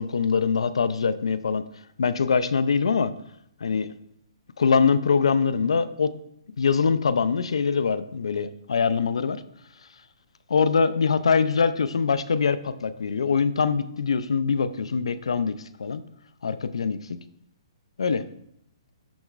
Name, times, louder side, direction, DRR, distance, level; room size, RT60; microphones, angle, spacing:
voice 1, 0.0-1.6 2.0-3.1 3.6-3.9 4.6-6.1 6.6-9.4 10.5-16.0 16.4-17.0 18.0-18.3, left 5 dB, 90° left, 13 dB, 0.6 m, -23 dB
11.5 x 6.2 x 2.5 m, 0.73 s
hypercardioid pair, 160°, 3 cm